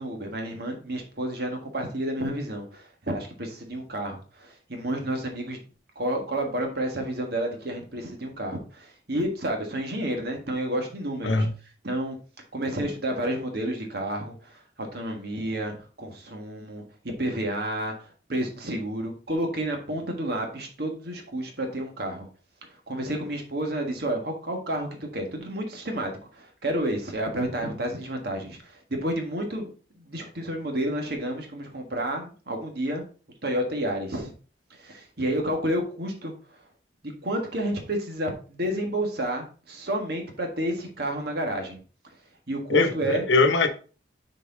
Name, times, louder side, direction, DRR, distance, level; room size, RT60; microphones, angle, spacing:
voice 1, 0.0-5.6 5.9-11.4 11.8-12.2 12.5-14.5 14.8-16.8 17.2-17.9 18.3-22.3 22.9-24.9 25.1-33.0 33.4-34.3 34.8-36.3 37.0-41.8 42.5-43.2, right 1 dB, 55° right, 1.6 m, -30 dB
voice 2, 42.7-43.7, left 3 dB, 80° left, 1.0 m, -21 dB
6.5 x 4.3 x 3.8 m
head